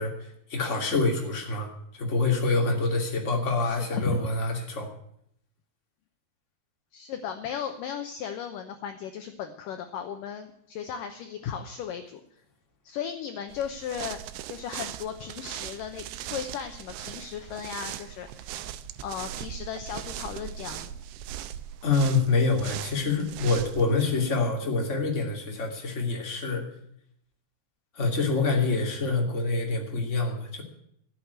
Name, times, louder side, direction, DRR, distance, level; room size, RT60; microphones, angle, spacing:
voice 1, 0.0-4.9 21.8-26.6 27.9-30.6, left 3 dB, 20° left, 1 dB, 2.3 m, -26 dB
voice 2, 3.6-4.2 6.9-12.2 12.8-14.2 14.5-18.3 19.0-21.0, left 8 dB, 75° left, 7 dB, 2.0 m, -36 dB
sound 1, 13.5-24.0, right 12 dB, 85° right, 3.0 m, -39 dB
14.5 x 8.4 x 8.1 m, 0.71 s
omnidirectional pair, 4.9 m